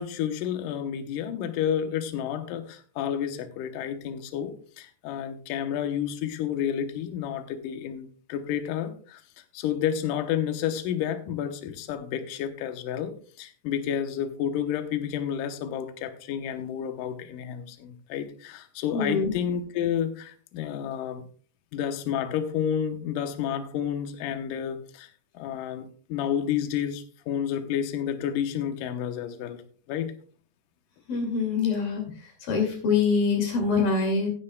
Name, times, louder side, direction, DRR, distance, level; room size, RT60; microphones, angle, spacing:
voice 1, 0.0-9.2 9.5-21.3 21.7-25.1 25.3-29.6 29.9-30.1, left 9 dB, 85° left, 8 dB, 1.9 m, -30 dB
voice 2, 18.9-19.3 31.1-32.0 32.4-34.3, left 5 dB, 55° left, 3 dB, 3.9 m, -24 dB
16.0 x 9.4 x 2.3 m, 0.42 s
omnidirectional pair, 5.1 m